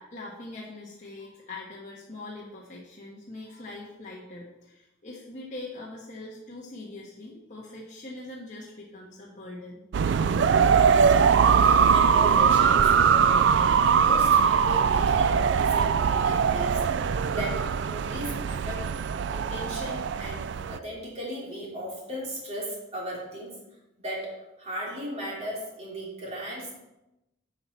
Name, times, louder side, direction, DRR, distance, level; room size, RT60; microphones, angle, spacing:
voice 1, 0.0-9.8 10.5-10.8, left 2 dB, 40° left, -5 dB, 1.4 m, -42 dB
sound 1, 9.9-20.8, right 6 dB, 60° right, 0.3 m, -21 dB
voice 2, 11.9-13.5 14.0-16.8 17.3-18.8 19.3-23.5 24.0-26.7, equal, 35° right, -3 dB, 2.7 m, -36 dB
10.5 x 5.8 x 4.1 m, 0.94 s
head